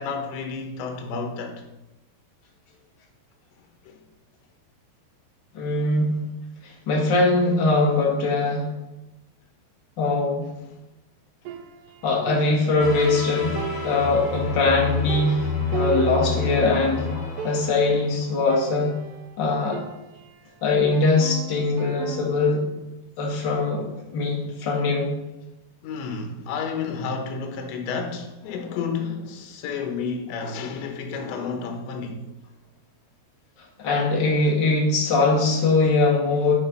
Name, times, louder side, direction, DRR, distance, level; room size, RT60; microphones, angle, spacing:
voice 1, 0.0-1.7 3.8-4.0 24.2-24.3 25.8-32.4, left 5 dB, 85° left, 3.3 m, -31 dB
voice 2, 5.5-6.2 6.6-8.6 10.0-10.4 12.0-17.1 17.4-18.9 19.4-19.8 20.6-22.6 23.2-23.9 24.1-25.1 33.8-36.5, left 3 dB, 40° left, 1.6 m, -21 dB
sound 1, 11.5-13.2 13.6-16.8 17.1-17.2 17.4-18.0 18.5-20.5 20.9-22.6, right 8 dB, 80° right, 2.6 m, -36 dB
sound 2, 12.8-18.6, left 5 dB, 60° left, 3.4 m, -29 dB
11.0 x 4.9 x 5.4 m
omnidirectional pair, 5.1 m